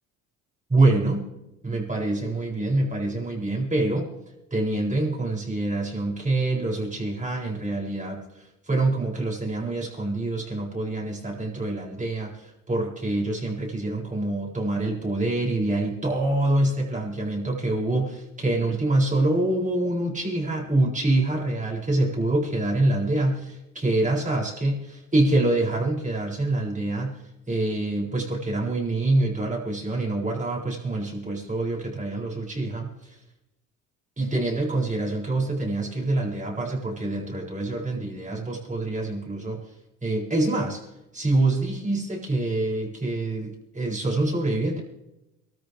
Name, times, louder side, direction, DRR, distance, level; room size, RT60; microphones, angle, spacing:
voice 1, 0.7-1.3 1.6-4.1 4.5-27.2 27.5-32.9 34.2-39.6 40.0-40.8 41.1-44.8, right 2 dB, 20° right, -2 dB, 7.7 m, -25 dB
24.0 x 14.0 x 3.6 m, 0.93 s
supercardioid pair, 65°, 36 cm